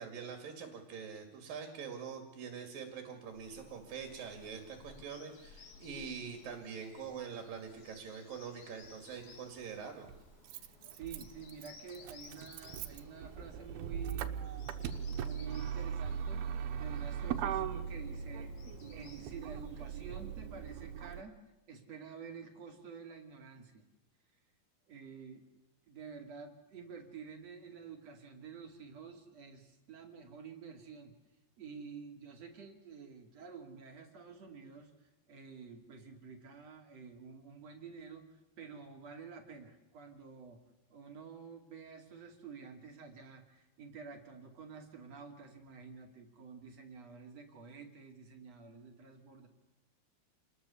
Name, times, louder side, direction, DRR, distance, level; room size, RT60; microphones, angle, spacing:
voice 1, 0.0-10.1, right 6 dB, 65° right, 4 dB, 3.9 m, -44 dB
Bird vocalization bird call bird song, 3.2-21.2, left 5 dB, 75° left, 4.8 m, -58 dB
Motor vehicle (road), 8.8-8.9 10.1-21.2, right 8 dB, 90° right, 3.0 m, -39 dB
voice 2, 10.5-14.5 15.1-16.5 16.8-18.5 18.9-21.4 21.7-23.8 24.9-25.4 25.9-31.1 31.6-40.6 40.9-49.5, right 6 dB, 45° right, 3 dB, 3.3 m, -50 dB
28.0 x 20.5 x 7.1 m, 1.0 s
omnidirectional pair, 4.4 m